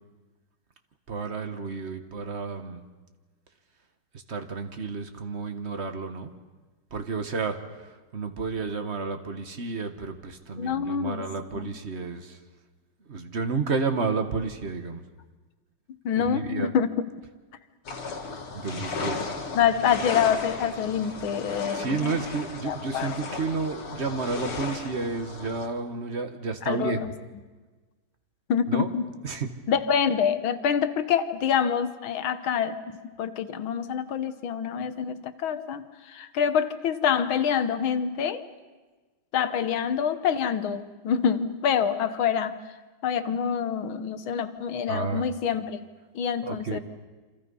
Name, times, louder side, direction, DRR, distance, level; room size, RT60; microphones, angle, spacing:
voice 1, 1.1-2.8 4.3-6.3 6.9-7.6 8.1-12.4 13.1-15.0 16.2-16.7 18.5-19.3 21.7-27.0 28.7-28.9 29.2-29.5 44.9-45.2 46.4-46.8, right 4 dB, 35° right, 7 dB, 1.3 m, -31 dB
voice 2, 10.5-11.3 11.5-11.7 16.1-16.9 19.5-22.2 22.6-23.2 26.7-27.1 28.5-29.1 29.7-38.5 39.3-42.6 43.0-45.8 46.2-46.8, left 7 dB, 70° left, 11 dB, 1.8 m, -26 dB
sound 1, 17.8-25.7, left 4 dB, 90° left, 2.8 m, -35 dB
28.0 x 26.0 x 5.5 m, 1.3 s
omnidirectional pair, 2.3 m